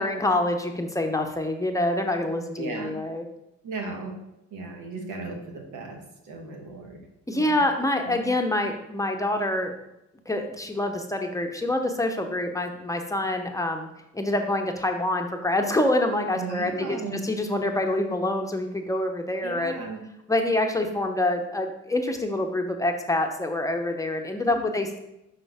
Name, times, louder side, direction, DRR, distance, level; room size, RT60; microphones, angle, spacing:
voice 1, 0.0-3.2 7.3-9.7 10.3-13.9 14.1-19.7 20.3-25.0, left 1 dB, 10° left, 3 dB, 0.7 m, -26 dB
voice 2, 2.6-3.0 3.6-4.1 4.5-7.0 7.3-7.7 8.0-8.3 16.3-17.2 19.4-20.0 24.4-24.7, right 3 dB, 90° right, 2 dB, 1.3 m, -36 dB
5.6 x 5.2 x 3.4 m, 0.88 s
cardioid pair, 90°, 30 cm